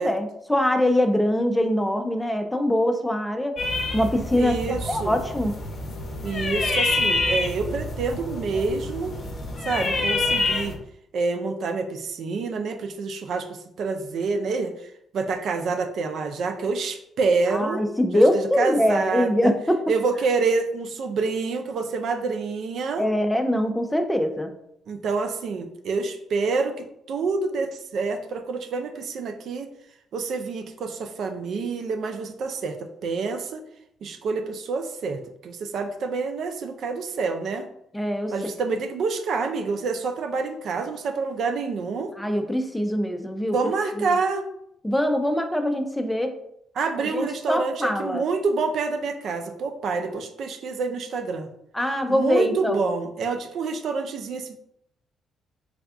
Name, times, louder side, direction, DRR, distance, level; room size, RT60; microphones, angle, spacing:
voice 1, 0.0-3.6 3.9-4.6 4.9-5.5 17.5-19.8 23.0-24.5 37.9-38.3 42.2-43.6 44.8-46.3 47.0-48.2 51.7-52.8, left 1 dB, 5° left, 6 dB, 0.5 m, -23 dB
sound 1, 3.6-10.8, left 2 dB, 45° left, 0.7 m, -27 dB
voice 2, 4.4-5.2 6.2-9.1 9.7-10.8 11.1-14.7 15.1-17.8 18.1-19.5 19.9-23.1 24.9-26.7 27.1-29.7 30.1-33.6 34.0-37.7 38.3-42.1 43.5-44.4 46.8-51.5 52.1-54.5, right 4 dB, 65° right, 6 dB, 0.4 m, -27 dB
3.4 x 2.3 x 3.6 m, 0.75 s
cardioid pair, 90°, 0 cm